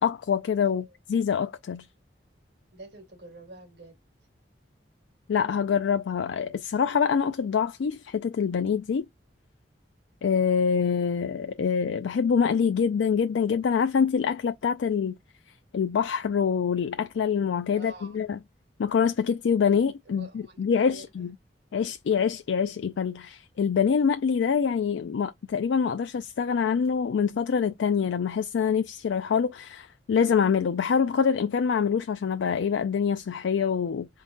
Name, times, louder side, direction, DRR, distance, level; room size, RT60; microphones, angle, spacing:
voice 1, 0.0-1.9 5.3-9.0 10.2-15.2 15.7-18.4 18.8-21.3 21.7-34.1, left 6 dB, 90° left, 0.4 m, -25 dB
voice 2, 2.7-4.0 17.7-18.2 20.1-21.3, right 2 dB, 70° right, 1.9 m, -47 dB
3.9 x 2.2 x 3.8 m
head